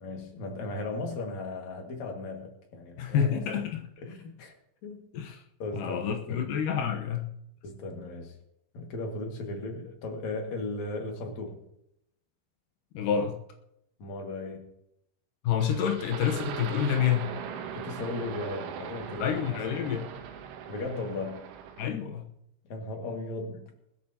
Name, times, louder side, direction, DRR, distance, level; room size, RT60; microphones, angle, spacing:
voice 1, 0.0-3.4 4.0-4.5 4.8-5.0 5.6-6.4 7.6-8.4 8.7-11.6 14.0-14.7 17.7-19.6 20.7-21.4 22.7-23.7, left 2 dB, 50° left, 2.7 m, -36 dB
voice 2, 3.0-3.9 5.1-5.4 5.7-7.3 12.9-13.4 15.4-17.3 19.2-20.1 21.8-22.3, left 8 dB, 85° left, 1.9 m, -28 dB
sound 1, 15.6-21.9, right 8 dB, 85° right, 3.7 m, -39 dB
20.5 x 13.5 x 2.9 m
omnidirectional pair, 5.4 m